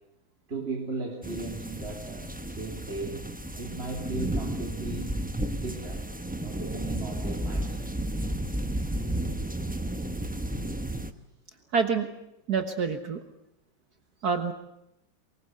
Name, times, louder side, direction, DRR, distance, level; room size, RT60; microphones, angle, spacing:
voice 1, 0.5-3.2 3.5-5.0 5.5-6.1 6.4-7.9, right 3 dB, 30° right, 0 dB, 3.4 m, -37 dB
sound 1, 1.2-11.1, right 1 dB, 10° right, 0.5 m, -32 dB
voice 2, 11.7-12.1 12.5-13.2 14.2-14.5, right 5 dB, 55° right, 8 dB, 1.9 m, -26 dB
24.0 x 21.5 x 7.9 m, 0.83 s
omnidirectional pair, 2.1 m